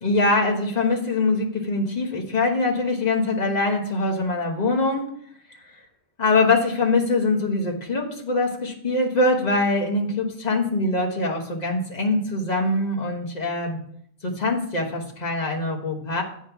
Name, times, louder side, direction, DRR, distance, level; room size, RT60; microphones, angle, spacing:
voice 1, 0.0-5.0 6.2-13.8 14.2-16.2, left 2 dB, 40° left, 0 dB, 1.3 m, -23 dB
8.4 x 3.6 x 5.8 m, 0.66 s
omnidirectional pair, 1.1 m